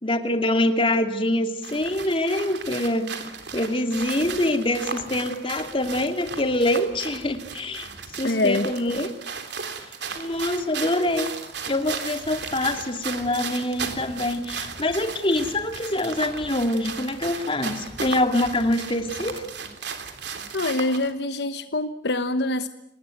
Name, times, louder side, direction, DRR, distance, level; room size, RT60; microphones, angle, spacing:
voice 1, 0.0-3.2 3.5-7.9 8.2-9.1 10.1-11.3 11.7-19.4, left 1 dB, 30° left, 6 dB, 2.7 m, -25 dB
sound 1, 1.6-21.1, right 5 dB, 65° right, 3.3 m, -36 dB
voice 2, 8.2-8.7 20.5-22.7, left 2 dB, 65° left, 10 dB, 1.1 m, -25 dB
28.5 x 20.0 x 9.3 m, 0.79 s
head